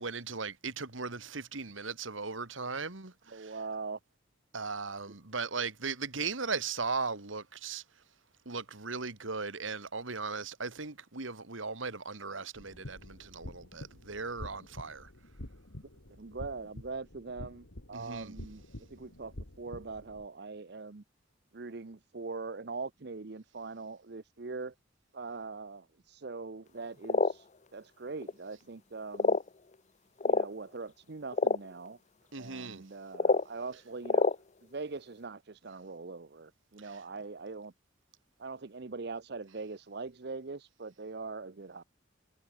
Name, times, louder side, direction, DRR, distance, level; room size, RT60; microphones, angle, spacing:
voice 1, 0.0-3.5 4.5-7.8 8.5-15.1 17.9-18.4 32.3-32.8 36.8-37.0, right 4 dB, 80° right, 2.3 m, -38 dB
voice 2, 3.3-4.0 5.1-5.2 16.2-21.0 21.5-24.7 25.1-29.4 30.2-32.0 32.4-37.7 38.4-41.8, right 4 dB, 55° right, 0.8 m, -42 dB
sound 1, 12.5-20.2, left 1 dB, 90° left, 3.0 m, -48 dB
sound 2, 27.0-27.3 28.2-28.3 29.1-29.5 30.2-30.5 31.3-31.6 33.1-33.4 34.0-34.3, left 3 dB, 35° left, 0.6 m, -26 dB
head